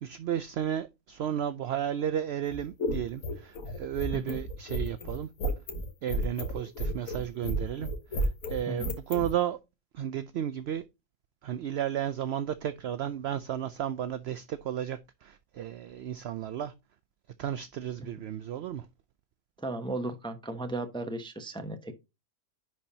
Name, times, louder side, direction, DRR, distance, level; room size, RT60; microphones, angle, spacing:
voice 1, 0.0-5.3 6.0-9.6 9.9-10.8 11.4-16.7 17.4-18.9, right 10 dB, 65° right, 0.6 m, -33 dB
sound 1, 2.4-9.3, equal, 70° left, 1.7 m, -32 dB
voice 2, 19.6-21.9, right 2 dB, 5° left, 0.5 m, -35 dB
10.5 x 4.4 x 2.7 m
omnidirectional pair, 1.5 m